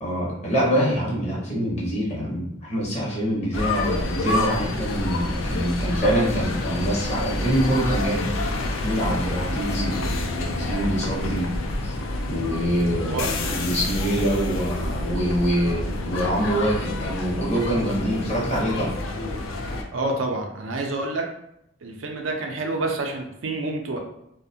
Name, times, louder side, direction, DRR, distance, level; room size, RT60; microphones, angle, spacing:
voice 1, 0.0-11.5 11.8-11.9 12.3-19.0, equal, 35° left, -4 dB, 0.7 m, -25 dB
sound 1, 3.5-19.8, left 2 dB, 80° left, 0.4 m, -28 dB
voice 2, 19.9-21.3 21.8-24.0, right 2 dB, 80° right, 2 dB, 0.4 m, -28 dB
2.4 x 2.1 x 2.6 m, 0.79 s
head